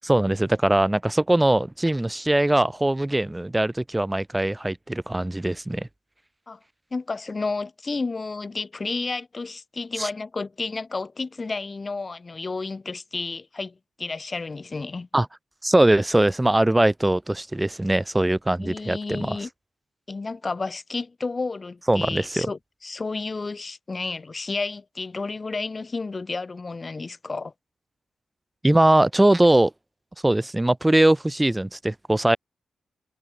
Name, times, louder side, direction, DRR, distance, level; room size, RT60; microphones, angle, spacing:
voice 1, 0.0-5.9 10.0-10.1 15.1-15.3 15.6-19.4 21.9-22.5 28.6-29.7 30.2-32.4, right 1 dB, 15° right, 0.4 m, -21 dB
voice 2, 6.9-15.1 18.6-19.5 20.1-27.5, left 3 dB, 35° left, 0.6 m, -31 dB
cardioid pair, 70°, 0 cm